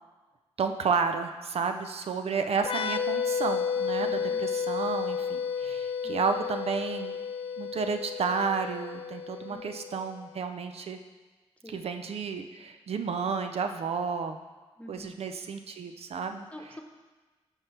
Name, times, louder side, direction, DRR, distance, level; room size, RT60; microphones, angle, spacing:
voice 1, 0.6-7.2 7.6-11.0 11.7-14.4 14.9-16.5, right 5 dB, 65° right, 7 dB, 0.5 m, -31 dB
sound 1, 2.6-10.1, left 6 dB, 55° left, 0.4 m, -32 dB
voice 2, 4.0-4.4 6.0-6.3 9.5-9.6 11.6-11.8 14.8-15.1 16.5-16.8, left 1 dB, 10° left, 2 dB, 1.1 m, -46 dB
11.5 x 4.6 x 3.3 m, 1.3 s
cardioid pair, 60°, 11 cm